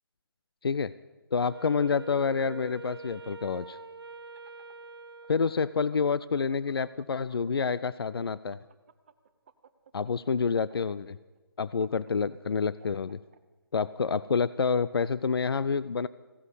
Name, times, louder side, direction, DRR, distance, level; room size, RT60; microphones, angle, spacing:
voice 1, 1.3-3.8 5.3-8.6 9.9-11.2 11.6-13.2 13.7-16.1, left 5 dB, 70° left, 17 dB, 0.4 m, -28 dB
Wind instrument woodwind instrument, 1.4-6.0, right 3 dB, 75° right, 0.8 m, -45 dB
sound 1, 4.1-7.7 8.0-13.4, right 7 dB, 30° right, 0.7 m, -56 dB
15.5 x 9.4 x 8.2 m, 1.2 s
figure-of-eight pair, 155°, 13 cm